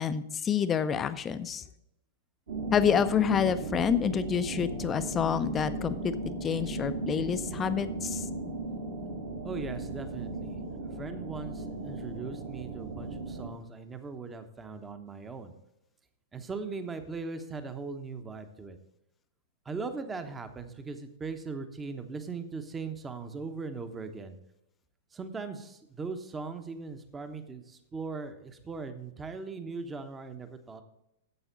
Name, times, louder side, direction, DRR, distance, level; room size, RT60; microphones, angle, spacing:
voice 1, 0.0-1.6 2.7-6.1 6.4-8.3, left 7 dB, 20° left, 12 dB, 0.7 m, -28 dB
sound 1, 2.5-13.5, right 2 dB, 60° right, 2.9 m, -36 dB
voice 2, 9.4-10.6 10.9-15.5 16.3-18.8 19.6-24.4 25.1-30.8, right 4 dB, 15° right, 9 dB, 1.1 m, -39 dB
12.5 x 8.1 x 4.0 m, 0.83 s
figure-of-eight pair, 100°, 0 cm